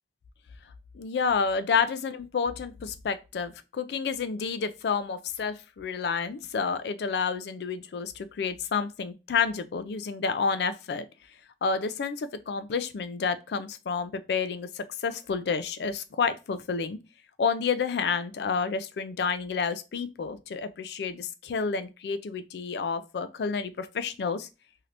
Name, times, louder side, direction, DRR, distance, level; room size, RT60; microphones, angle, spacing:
voice 1, 0.9-11.0 11.6-17.0 17.4-24.5, left 5 dB, 65° left, 0.4 m, -29 dB
3.2 x 2.8 x 2.5 m
head